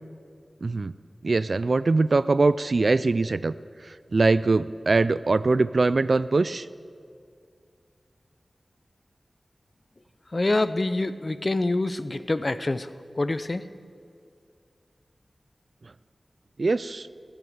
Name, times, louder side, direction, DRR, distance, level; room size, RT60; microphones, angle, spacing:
voice 1, 0.6-0.9 1.2-3.5 4.1-6.7 16.6-17.1, right 3 dB, 65° right, 16 dB, 0.3 m, -22 dB
voice 2, 10.3-12.9 13.2-13.6, left 2 dB, 40° left, 13 dB, 0.6 m, -26 dB
14.5 x 10.0 x 8.0 m, 2.3 s
wide cardioid pair, 80°, 0 cm